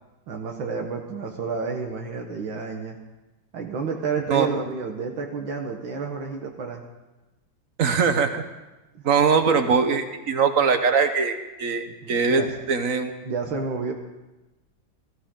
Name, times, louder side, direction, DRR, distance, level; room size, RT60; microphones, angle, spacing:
voice 1, 0.3-3.0 3.5-6.8 8.9-9.0 11.9-12.5 13.2-13.9, right 4 dB, 70° right, 1 dB, 2.0 m, -30 dB
voice 2, 7.8-8.4 9.0-13.1, right 5 dB, 50° right, 8 dB, 1.2 m, -22 dB
20.0 x 14.5 x 3.8 m, 1.1 s
omnidirectional pair, 2.2 m